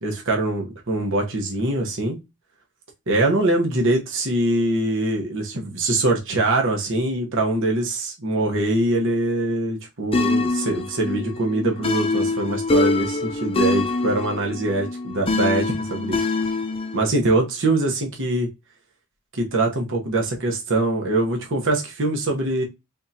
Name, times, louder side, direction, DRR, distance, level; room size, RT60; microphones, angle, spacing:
voice 1, 0.0-2.2 3.1-16.2 16.9-18.5 19.3-22.6, right 2 dB, 60° right, 1.1 m, -23 dB
sound 1, 10.1-17.0, left 3 dB, 25° left, 0.5 m, -24 dB
3.8 x 3.5 x 2.8 m
head